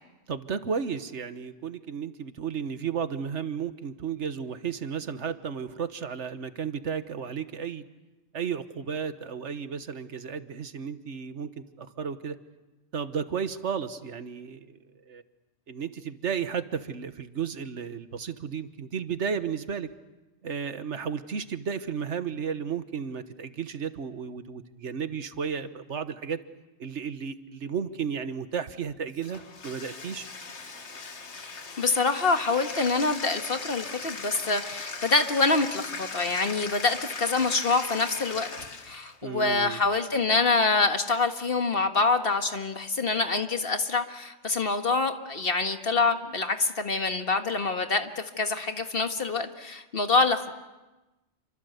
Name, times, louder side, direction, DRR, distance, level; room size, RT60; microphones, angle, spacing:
voice 1, 0.3-7.8 8.3-12.4 12.9-14.8 15.1-15.2 15.7-19.9 20.4-26.4 26.8-30.3 39.2-39.8, right 6 dB, 80° right, 11 dB, 1.5 m, -33 dB
Bathtub (filling or washing), 29.1-39.2, left 4 dB, 75° left, 2.0 m, -39 dB
voice 2, 31.8-38.5 38.8-50.5, left 3 dB, 55° left, 7 dB, 1.8 m, -26 dB
28.5 x 25.0 x 8.1 m, 1.1 s
omnidirectional pair, 1.2 m